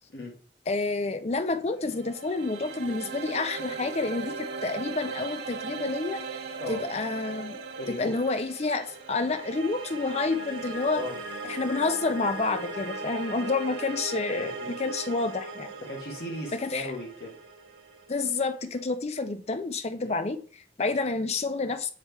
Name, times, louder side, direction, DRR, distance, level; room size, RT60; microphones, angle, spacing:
voice 1, 0.7-6.2 6.7-7.6 7.9-11.0 11.5-15.7 16.5-16.9 18.1-21.9, left 3 dB, 35° left, 0.5 m, -29 dB
sound 1, 1.7-18.8, right 4 dB, 75° right, 1.1 m, -38 dB
voice 2, 7.7-8.1 10.9-11.2 14.4-14.7 15.8-17.4 20.0-20.1, left 1 dB, 65° left, 1.5 m, -36 dB
7.4 x 3.3 x 4.6 m
head